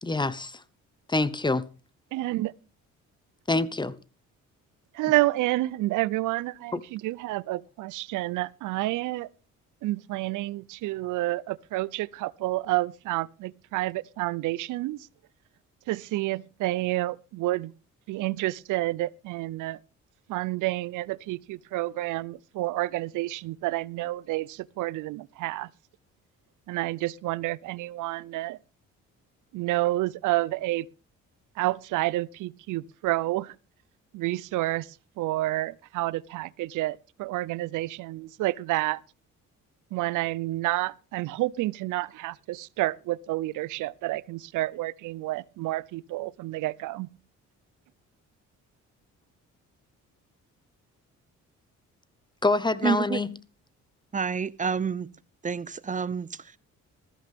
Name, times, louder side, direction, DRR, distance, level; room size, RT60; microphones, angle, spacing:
voice 1, 0.0-0.6 1.1-1.6 3.5-3.9 6.7-6.8 52.4-53.3, left 2 dB, 15° left, 1.0 m, -25 dB
voice 2, 2.1-2.5 4.9-9.3 9.8-15.1 15.9-17.7 18.1-19.8 20.3-25.7 26.7-28.6 29.5-30.9 31.6-33.6 34.1-39.0 39.9-47.1, right 18 dB, 85° right, 0.6 m, -29 dB
voice 3, 52.8-53.2 54.1-55.1 55.4-56.6, right 5 dB, 25° right, 0.6 m, -29 dB
14.5 x 14.0 x 3.6 m
cardioid pair, 90°, 30 cm